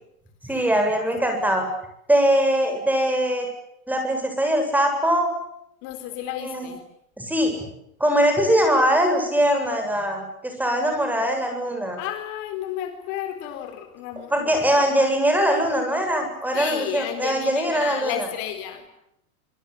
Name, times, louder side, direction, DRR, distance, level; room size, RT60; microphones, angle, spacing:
voice 1, 0.4-1.7 2.1-3.5 3.9-5.3 6.4-6.7 7.2-7.5 8.0-12.0 14.3-18.2, equal, 5° right, 5 dB, 8.0 m, -21 dB
voice 2, 5.8-6.8 12.0-14.7 16.5-19.0, left 11 dB, 45° left, 8 dB, 4.1 m, -32 dB
26.0 x 25.5 x 8.7 m, 0.81 s
supercardioid pair, 140°, 44 cm